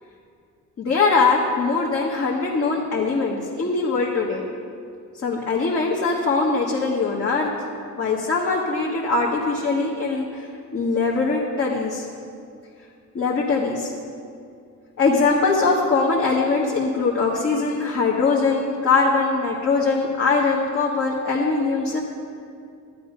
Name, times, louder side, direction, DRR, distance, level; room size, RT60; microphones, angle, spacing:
voice 1, 0.8-4.4 5.2-7.5 8.0-10.5 10.7-12.1 13.1-13.9 15.0-22.0, left 4 dB, 50° left, -5 dB, 1.6 m, -22 dB
11.5 x 9.4 x 5.3 m, 2.4 s
cardioid pair, 90°, 30 cm